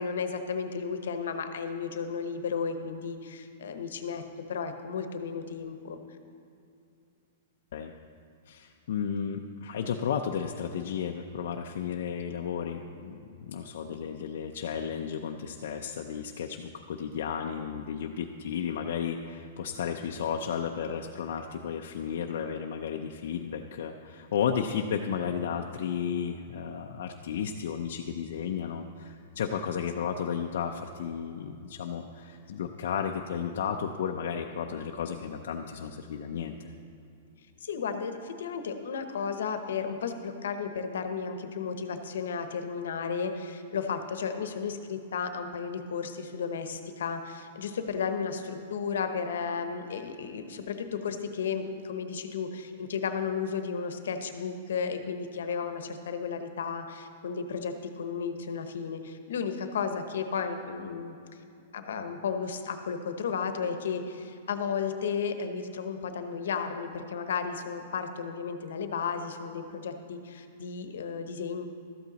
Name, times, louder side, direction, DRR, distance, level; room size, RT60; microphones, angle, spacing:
voice 1, 0.0-4.2 4.5-6.0 37.6-61.2 61.7-71.7, left 6 dB, 75° left, 8 dB, 0.9 m, -33 dB
voice 2, 8.5-36.7, left 7 dB, 55° left, 2 dB, 0.4 m, -33 dB
13.0 x 8.4 x 4.0 m, 2.6 s
supercardioid pair, 180°, 0 cm